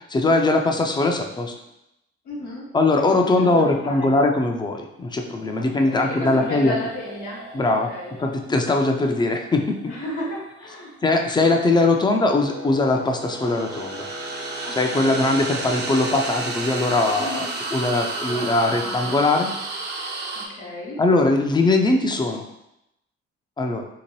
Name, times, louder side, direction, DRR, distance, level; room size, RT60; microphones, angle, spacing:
voice 1, 0.0-1.5 2.7-6.7 7.5-7.9 8.2-9.6 11.0-14.1 14.7-19.5 21.0-22.4 23.6-23.8, left 2 dB, 15° left, 3 dB, 0.4 m, -21 dB
voice 2, 2.2-2.6 3.2-4.1 5.6-7.4 7.9-8.2 9.8-10.9 14.6-15.2 17.1-17.6 18.2-19.2 20.3-21.0, left 1 dB, 75° left, -6 dB, 1.0 m, -33 dB
sound 1, 5.3-10.5 12.9-20.5, right 3 dB, 35° right, 0.6 m, -33 dB
Wind instrument woodwind instrument, 12.0-17.3, right 1 dB, 70° right, 1.0 m, -38 dB
2.8 x 2.1 x 3.0 m, 0.84 s
supercardioid pair, 55°, 30 cm